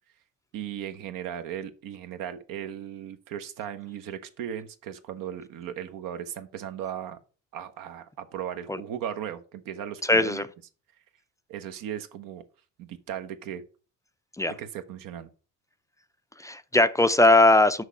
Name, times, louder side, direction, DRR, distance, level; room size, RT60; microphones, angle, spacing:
voice 1, 0.5-7.2 7.5-10.4 11.5-12.4 12.8-13.6 14.6-15.3, right 10 dB, 75° right, 1.1 m, -37 dB
voice 2, 10.0-10.5 14.4-14.5 16.4-17.8, left 2 dB, 10° left, 0.4 m, -20 dB
6.4 x 5.2 x 5.8 m
cardioid pair, 110°, 34 cm